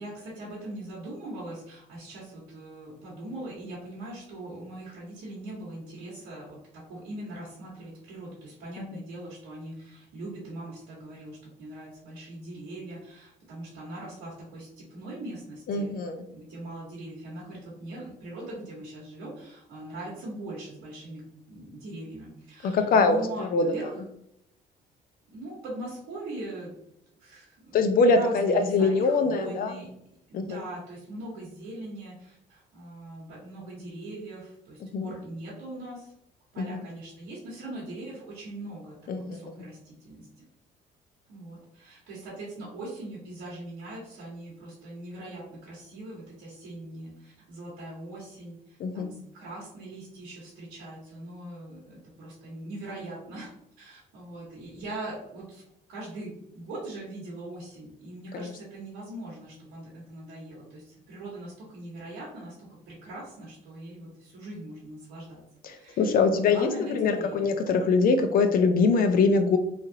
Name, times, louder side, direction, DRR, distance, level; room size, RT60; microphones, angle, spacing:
voice 1, 0.0-16.0 16.3-21.2 21.5-24.0 25.3-26.8 27.2-29.9 30.3-36.1 36.5-40.4 41.3-53.5 53.8-55.6 55.9-65.4 65.7-67.5, right 1 dB, 85° right, -6 dB, 1.2 m, -41 dB
voice 2, 15.7-16.2 22.6-23.7 27.7-29.7 30.3-30.6 34.9-35.1 36.6-36.7 39.1-39.4 48.8-49.1 58.3-58.5 65.6-69.6, left 4 dB, 55° left, 7 dB, 0.4 m, -23 dB
3.1 x 2.4 x 2.7 m, 0.78 s
cardioid pair, 95°, 18 cm